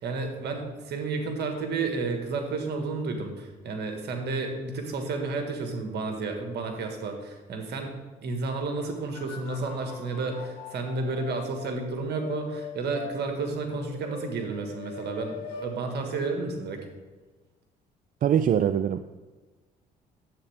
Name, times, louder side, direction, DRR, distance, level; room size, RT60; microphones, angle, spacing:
voice 1, 0.0-7.9 8.2-16.8, right 3 dB, 65° right, 4 dB, 1.6 m, -31 dB
sound 1, 9.1-13.2 13.7-15.7 16.1-16.2, left 6 dB, 90° left, 1.3 m, -42 dB
voice 2, 18.2-19.0, right 9 dB, 50° right, 11 dB, 0.4 m, -23 dB
9.7 x 7.9 x 3.5 m, 1.3 s
supercardioid pair, 70°, 18 cm